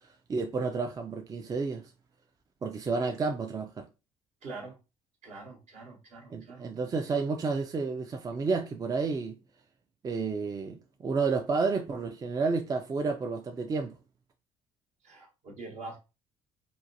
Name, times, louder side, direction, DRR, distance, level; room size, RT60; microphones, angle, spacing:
voice 1, 0.3-1.9 2.6-3.9 6.3-9.4 10.0-14.0, right 4 dB, 30° right, 0.4 m, -31 dB
voice 2, 4.4-4.8 5.2-6.7 15.0-16.0, right 3 dB, 60° right, 1.0 m, -44 dB
2.7 x 2.2 x 2.6 m
hypercardioid pair, 60°, 13 cm